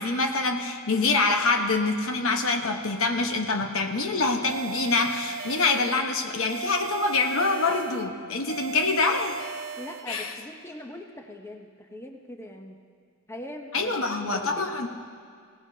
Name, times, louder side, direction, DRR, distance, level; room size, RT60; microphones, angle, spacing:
voice 1, 0.0-9.4 10.1-10.3 13.7-14.9, left 3 dB, 70° left, 4 dB, 1.1 m, -25 dB
sound 1, 4.5-6.1 6.5-8.1 8.5-10.1, right 6 dB, 75° right, 0.6 m, -37 dB
voice 2, 9.8-12.8 13.3-14.8, left 1 dB, 10° left, 3 dB, 0.7 m, -41 dB
20.5 x 17.0 x 2.8 m, 2.3 s
head